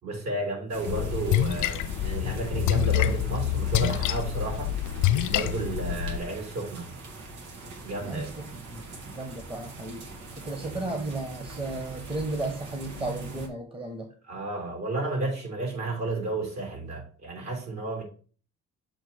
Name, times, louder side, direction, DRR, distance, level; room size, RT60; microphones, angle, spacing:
voice 1, 0.0-4.7 5.3-6.9 7.8-8.3 10.6-10.8 14.3-18.0, right 2 dB, 60° right, 3.7 m, -32 dB
sound 1, 0.7-13.5, right 3 dB, 85° right, 1.5 m, -42 dB
Splash splatter, 0.9-6.2, left 11 dB, 75° left, 0.5 m, -26 dB
voice 2, 8.0-14.1, right 2 dB, 20° right, 1.3 m, -35 dB
7.0 x 2.9 x 5.7 m
cardioid pair, 90°, 30 cm